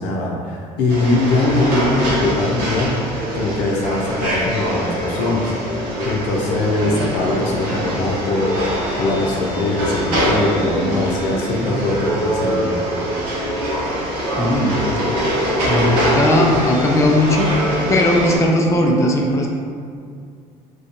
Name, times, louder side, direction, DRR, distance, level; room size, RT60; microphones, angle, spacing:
voice 1, 0.0-5.5 6.0-8.5 9.0-12.8, left 2 dB, 70° left, -2 dB, 0.5 m, -21 dB
sound 1, 0.9-18.4, equal, 80° right, 0.7 m, -23 dB
sound 2, 5.6-6.2 6.8-7.3 10.0-11.2 11.6-12.3 13.2-13.7 16.0-16.5 17.6-18.1, equal, 25° right, 0.6 m, -31 dB
voice 2, 14.4-14.8 15.7-17.6 17.9-19.5, left 1 dB, 15° left, 0 dB, 0.4 m, -17 dB
2.4 x 2.2 x 2.7 m, 2.2 s
hypercardioid pair, 65°, 18 cm